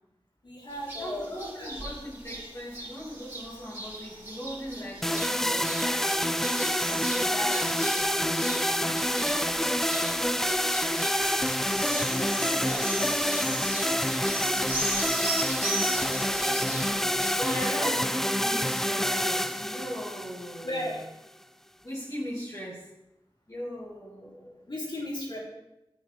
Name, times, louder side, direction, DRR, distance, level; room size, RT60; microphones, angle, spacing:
voice 1, 0.4-2.1 11.9-15.3 15.6-18.0 20.6-21.0 24.7-25.4, left 1 dB, 55° left, -5 dB, 4.0 m, -38 dB
sound 1, 0.7-17.6, right 2 dB, 30° right, 3.6 m, -39 dB
voice 2, 1.0-6.2 6.6-10.2 17.4-20.8 21.8-22.9 23.5-24.6, equal, 35° left, -7 dB, 2.6 m, -39 dB
sound 2, 5.0-21.0, equal, 5° left, 0.4 m, -27 dB
12.5 x 8.2 x 3.6 m, 0.90 s
wide cardioid pair, 60°, 10 cm